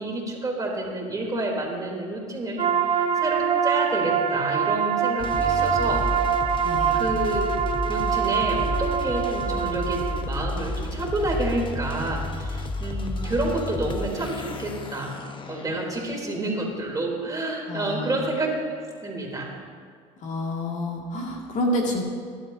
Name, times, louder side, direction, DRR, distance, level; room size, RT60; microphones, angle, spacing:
voice 1, 0.0-6.0 6.9-7.4 7.9-15.2 15.5-19.5, right 2 dB, 20° right, -1 dB, 3.6 m, -29 dB
sound 1, 2.6-10.2, right 7 dB, 40° right, 1.1 m, -24 dB
sound 2, 5.2-16.3, left 2 dB, 30° left, 1.2 m, -32 dB
voice 2, 6.6-7.0 17.7-18.3 20.2-22.0, left 1 dB, 55° left, -1 dB, 2.4 m, -28 dB
19.5 x 11.5 x 2.8 m, 2.1 s
supercardioid pair, 85°, 15 cm